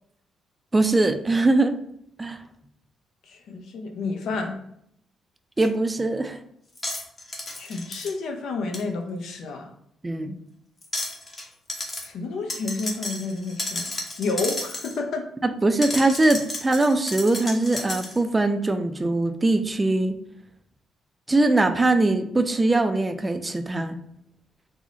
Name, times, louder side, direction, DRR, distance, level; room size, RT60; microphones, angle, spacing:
voice 1, 0.7-1.8 2.2-2.4 5.6-6.4 10.0-10.3 15.4-20.1 21.3-24.0, right 2 dB, 20° right, 8 dB, 0.3 m, -22 dB
voice 2, 3.3-4.6 7.6-9.7 12.0-13.9 14.2-15.3, left 3 dB, 75° left, 4 dB, 0.5 m, -30 dB
sound 1, 5.6-5.7 6.7-8.1 8.7-8.8 10.8-11.4 11.7-12.1 12.5-15.0 15.8-18.2, left 2 dB, 30° left, 0.8 m, -32 dB
3.6 x 2.1 x 3.8 m, 0.73 s
cardioid pair, 90°, 0 cm